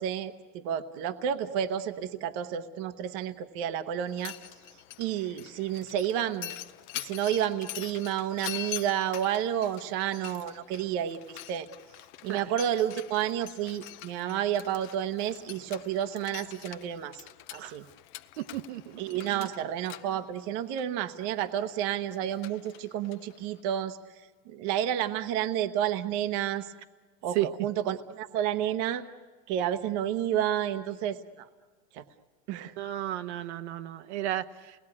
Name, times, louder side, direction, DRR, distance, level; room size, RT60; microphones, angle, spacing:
voice 1, 0.0-4.3 5.0-6.6 6.9-11.7 12.2-17.2 17.5-17.8 19.0-24.0 24.5-26.7 27.2-29.0 29.5-31.5 31.9-32.0 32.5-32.7, right 10 dB, 40° right, 10 dB, 1.0 m, -30 dB
Mechanisms, 4.0-23.6, left 15 dB, 45° left, 0.7 m, -45 dB
voice 2, 18.4-19.0 19.3-19.5 27.3-27.5 32.8-34.8, right 14 dB, 85° right, 9 dB, 1.1 m, -33 dB
29.0 x 19.5 x 9.8 m, 1.5 s
supercardioid pair, 175°, 33 cm